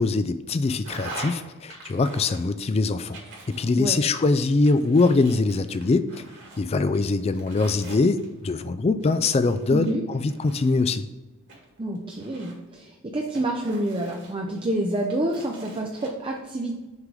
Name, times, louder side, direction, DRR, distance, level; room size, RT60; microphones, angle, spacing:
voice 1, 0.0-3.2 3.5-6.1 6.6-11.0, left 3 dB, 30° left, 12 dB, 0.3 m, -23 dB
sound 1, 0.8-1.4 1.7-2.7 3.1-4.2 4.6-6.6 6.9-8.5 9.0-10.9 11.5-12.7 13.3-14.7 15.1-16.1, right 2 dB, 55° right, 2.0 m, -43 dB
voice 2, 9.7-10.0 11.8-16.8, right 1 dB, 25° right, 1 dB, 0.5 m, -28 dB
6.4 x 3.8 x 4.7 m, 1.1 s
head